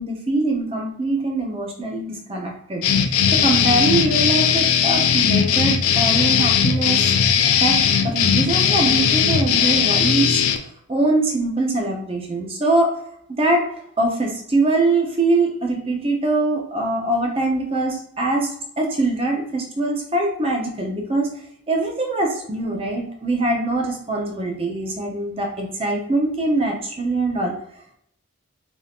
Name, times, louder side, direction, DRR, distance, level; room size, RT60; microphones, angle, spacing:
voice 1, 0.0-2.8 3.3-7.1 7.5-10.6 10.9-12.9 13.4-13.6 14.0-18.5 18.8-21.3 21.7-27.5, right 2 dB, 25° right, 0 dB, 0.5 m, -23 dB
sound 1, 2.8-10.6, left 7 dB, 85° left, 0.4 m, -18 dB
3.4 x 2.6 x 2.3 m, 0.71 s
head